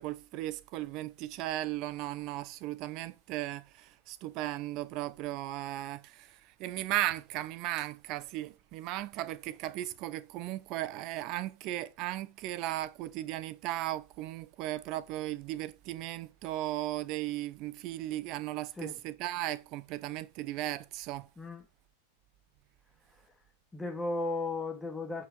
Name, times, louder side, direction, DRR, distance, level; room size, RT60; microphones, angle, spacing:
voice 1, 0.0-21.3, right 15 dB, 40° right, 0.9 m, -36 dB
voice 2, 23.7-25.3, left 2 dB, 10° left, 2.4 m, -35 dB
9.1 x 6.4 x 5.5 m
figure-of-eight pair, 90°, 0 cm